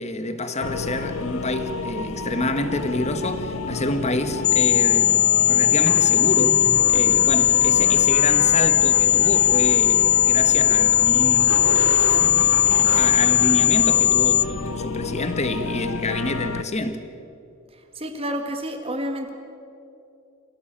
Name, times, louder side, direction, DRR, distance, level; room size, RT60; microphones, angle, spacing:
voice 1, 0.0-11.6 13.0-17.0, left 2 dB, 30° left, 1.6 m, -28 dB
sound 1, 0.6-16.6, left 3 dB, 80° left, 1.0 m, -31 dB
sound 2, 4.4-14.4, left 11 dB, 50° left, 0.6 m, -18 dB
sound 3, 5.9-14.6, right 4 dB, 80° right, 1.0 m, -35 dB
voice 2, 18.0-19.3, equal, 25° right, 1.9 m, -29 dB
26.5 x 16.5 x 9.0 m
head